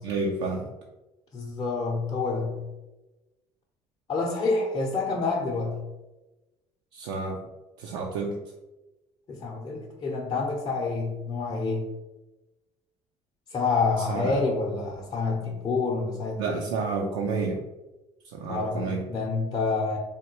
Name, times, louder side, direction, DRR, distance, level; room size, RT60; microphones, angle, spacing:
voice 1, 0.0-0.7 6.9-7.4 7.8-8.4 14.0-14.3 16.4-17.6 18.3-19.0, right 4 dB, 85° right, -1 dB, 0.4 m, -30 dB
voice 2, 1.3-2.6 4.1-5.8 9.3-11.9 13.5-16.7 18.5-20.0, left 3 dB, 30° left, -4 dB, 0.6 m, -28 dB
3.4 x 2.2 x 2.8 m, 1.0 s
supercardioid pair, 80°, 14 cm